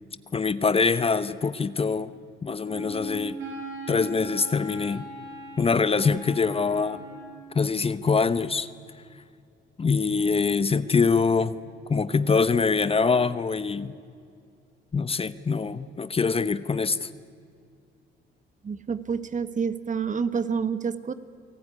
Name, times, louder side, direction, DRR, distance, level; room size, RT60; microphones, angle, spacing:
voice 1, 0.3-2.1 2.4-3.4 3.9-5.1 5.6-7.0 7.5-8.7 9.8-11.5 11.9-13.9 14.9-17.1, left 4 dB, 30° left, 15 dB, 0.9 m, -24 dB
Wind instrument woodwind instrument, 2.6-7.4, right 1 dB, 80° right, 7.8 m, -40 dB
voice 2, 18.6-21.1, right 6 dB, 40° right, 13 dB, 1.4 m, -28 dB
29.5 x 18.5 x 9.8 m, 2.3 s
cardioid pair, 90°, 20 cm